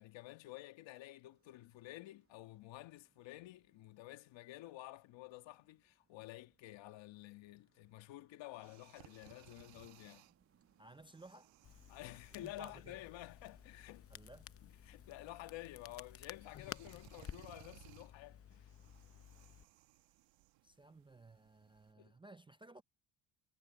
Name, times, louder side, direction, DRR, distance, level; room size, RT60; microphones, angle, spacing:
voice 1, 0.0-10.2 11.9-14.1 14.6-18.7 22.0-22.2, left 16 dB, 70° left, 1.6 m, -51 dB
sound 1, 1.3-17.4, right 5 dB, 30° right, 7.6 m, -78 dB
sound 2, 8.4-21.9, right 16 dB, 75° right, 1.9 m, -65 dB
voice 2, 10.8-11.5 12.3-13.0 14.1-14.5 20.6-22.8, right 2 dB, 10° right, 0.4 m, -57 dB
Crackle, 11.6-19.6, left 9 dB, 30° left, 0.6 m, -54 dB
cardioid pair, 115°, 46 cm